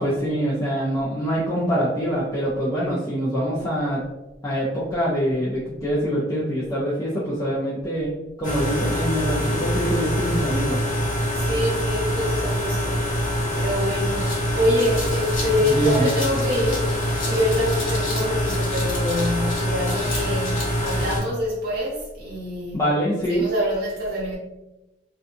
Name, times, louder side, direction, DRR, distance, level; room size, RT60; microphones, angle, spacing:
voice 1, 0.0-4.0 4.4-8.1 8.4-10.8 15.6-16.1 22.7-23.4, equal, 15° left, -8 dB, 0.4 m, -24 dB
sound 1, 8.4-21.2, equal, 40° left, 0.9 m, -25 dB
voice 2, 11.3-16.8 17.2-22.9 23.3-24.4, left 1 dB, 50° right, -6 dB, 1.2 m, -26 dB
sound 2, 14.0-21.2, left 2 dB, 80° left, 0.9 m, -35 dB
2.6 x 2.3 x 2.5 m, 0.99 s
head